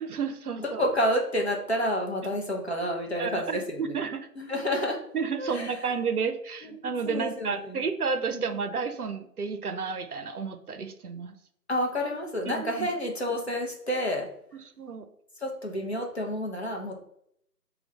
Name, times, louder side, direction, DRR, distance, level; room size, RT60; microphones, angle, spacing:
voice 1, 0.0-0.8 3.2-4.3 5.1-11.4 12.4-12.9 14.8-15.1, right 5 dB, 70° right, 9 dB, 0.6 m, -31 dB
voice 2, 0.6-4.0 4.4-5.0 5.4-5.7 6.6-6.7 7.0-7.8 8.3-8.4 11.7-14.3 15.4-16.9, equal, 45° left, 0 dB, 0.6 m, -29 dB
2.9 x 2.3 x 3.3 m, 0.70 s
figure-of-eight pair, 155°, 47 cm